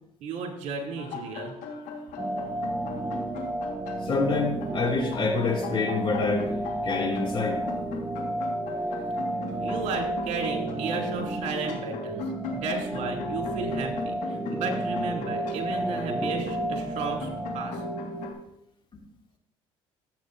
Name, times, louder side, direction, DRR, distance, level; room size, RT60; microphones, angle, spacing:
voice 1, 0.2-1.5 9.6-12.2 12.5-17.8, right 4 dB, 65° right, 1 dB, 2.7 m, -33 dB
sound 1, 1.0-18.3, left 3 dB, 70° left, 1.6 m, -39 dB
sound 2, 2.2-18.3, right 1 dB, 15° right, 0.6 m, -32 dB
voice 2, 4.0-6.6 6.8-7.6 18.9-19.0, left 3 dB, 40° left, 1 dB, 2.4 m, -27 dB
13.5 x 8.2 x 2.6 m, 0.81 s
supercardioid pair, 75°, 13 cm